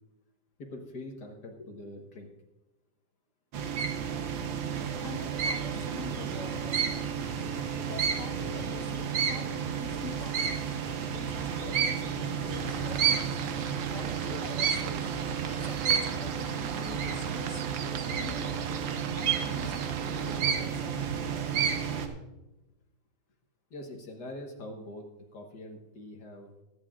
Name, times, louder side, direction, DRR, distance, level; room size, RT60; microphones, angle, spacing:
voice 1, 0.6-2.3 23.7-25.0 25.3-26.5, left 1 dB, 65° left, 2 dB, 1.8 m, -43 dB
sound 1, 3.5-22.1, right 7 dB, 85° right, 1.8 m, -31 dB
voice 2, 5.0-7.1 7.8-13.3 13.9-15.1 15.4-18.7 19.2-21.1, left 4 dB, 45° left, 2 dB, 1.6 m, -45 dB
sound 2, 12.5-20.4, right 8 dB, 60° right, 0.9 m, -41 dB
22.5 x 9.8 x 2.5 m, 1.0 s
omnidirectional pair, 2.0 m